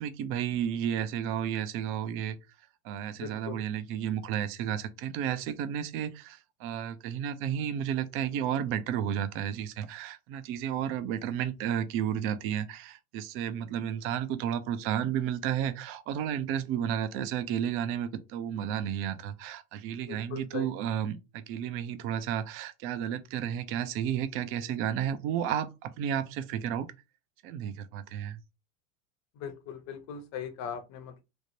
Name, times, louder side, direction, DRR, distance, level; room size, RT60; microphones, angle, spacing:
voice 1, 0.0-2.4 2.8-26.9 27.4-28.4, right 9 dB, 35° right, 0.4 m, -32 dB
voice 2, 3.2-3.6 20.1-20.7 29.4-31.2, left 7 dB, 40° left, 0.7 m, -39 dB
3.2 x 2.0 x 2.7 m
hypercardioid pair, 95°, 42 cm